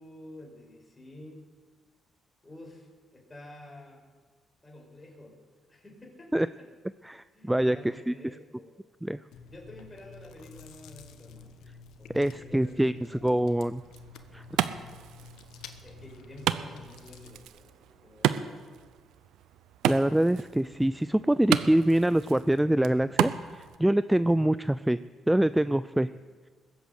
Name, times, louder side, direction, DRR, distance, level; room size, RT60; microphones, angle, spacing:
voice 1, 0.0-1.4 2.4-4.0 4.6-5.4 5.7-6.7 7.3-8.8 9.5-11.6 12.0-13.3 15.8-18.7 24.3-24.4 26.0-26.2, left 1 dB, 20° left, 0 dB, 4.9 m, -49 dB
voice 2, 7.0-7.8 8.1-8.2 9.0-9.2 12.1-13.8 14.3-14.4 19.9-25.0 25.3-26.1, right 1 dB, 5° right, 15 dB, 0.4 m, -25 dB
Chewing mastication, 9.3-17.5, left 4 dB, 85° left, 1.1 m, -50 dB
Wood, 13.8-23.8, right 11 dB, 90° right, 0.7 m, -33 dB
20.5 x 8.2 x 8.2 m, 1.5 s
cardioid pair, 90°, 0 cm